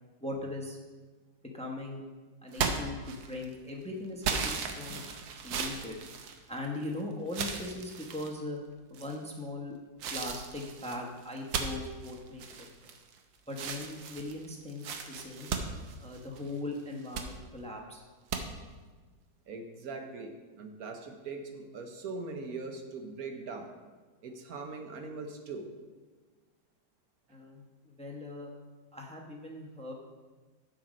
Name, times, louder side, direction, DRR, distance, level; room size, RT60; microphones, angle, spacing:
voice 1, 0.2-0.8 1.5-2.0 2.4-5.1 5.4-6.0 6.5-8.6 8.9-9.8 10.1-12.7 13.5-15.5 16.0-18.0 27.3-28.5 28.9-29.9, left 2 dB, 5° left, 0 dB, 0.5 m, -39 dB
sound 1, 2.5-3.5 4.2-6.9 7.3-8.3 8.9-9.4 10.0-13.2 13.5-16.5 16.9-17.3 18.3-18.4, right 6 dB, 80° right, 1.5 m, -36 dB
voice 2, 19.5-23.7 24.2-25.7, right 3 dB, 55° right, 4 dB, 1.3 m, -41 dB
7.7 x 7.5 x 5.1 m, 1.4 s
omnidirectional pair, 2.0 m